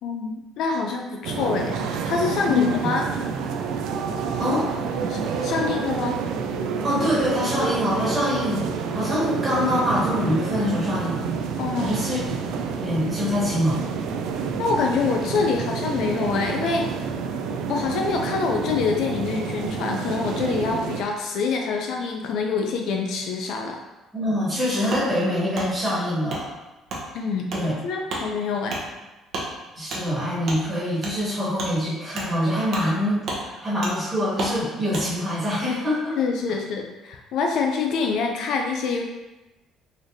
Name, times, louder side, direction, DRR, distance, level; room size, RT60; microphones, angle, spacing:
voice 1, 0.0-3.1 5.1-6.2 11.6-12.0 14.6-16.9 17.7-23.8 27.1-27.5 27.8-28.8 36.2-39.0, left 4 dB, 60° left, 2 dB, 0.4 m, -26 dB
sound 1, 1.2-21.0, right 5 dB, 80° right, 0.3 m, -28 dB
voice 2, 2.4-2.9 4.4-4.7 6.8-11.3 11.8-12.2 12.8-13.8 24.1-26.4 27.5-27.7 29.8-36.2, left 1 dB, 10° right, -8 dB, 1.4 m, -24 dB
Wood, 24.9-25.1 25.5-25.7 26.3-26.4 26.9-27.0 27.5-27.6 28.1-28.2 28.7-28.8 29.3-29.5 29.9-30.0 30.4-30.6 31.0-31.1 31.6-31.7 32.1-32.3 32.7-32.9 33.2-33.4 33.8-33.9 34.4-34.5 34.9-35.1, right 2 dB, 50° right, 0.8 m, -31 dB
3.9 x 3.2 x 2.6 m, 1.1 s
cardioid pair, 170°, 0 cm